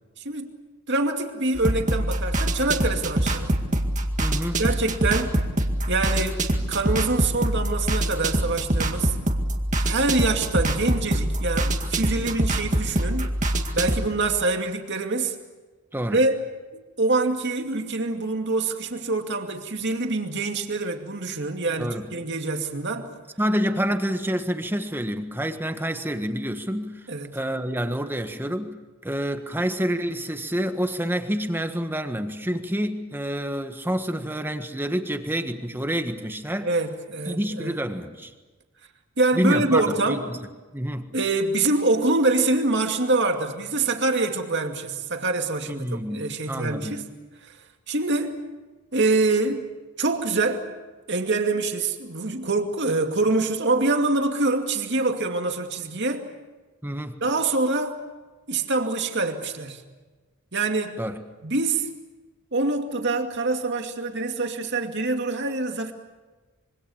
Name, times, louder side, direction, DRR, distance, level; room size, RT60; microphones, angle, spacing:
voice 1, 0.9-3.6 4.6-5.3 5.9-9.2 9.8-13.3 13.7-15.3 16.1-16.4 17.0-23.1 27.1-27.4 36.6-37.8 39.2-40.2 41.1-47.1 47.4-47.5 47.9-48.4 48.9-49.7 50.0-50.7 51.1-56.3 57.2-58.0 58.5-59.8 60.5-61.0 61.4-61.9 62.5-65.9, right 3 dB, 50° right, 5 dB, 2.4 m, -25 dB
sound 1, 1.5-14.1, right 1 dB, 35° right, 2.0 m, -25 dB
voice 2, 4.2-4.6 15.9-16.2 21.8-22.1 23.4-26.9 27.3-28.8 29.0-36.7 37.3-38.3 39.3-40.4 40.7-41.1 45.7-47.0 56.8-57.1 61.0-61.2, equal, 10° right, 7 dB, 1.5 m, -28 dB
26.0 x 24.5 x 7.2 m, 1.3 s
head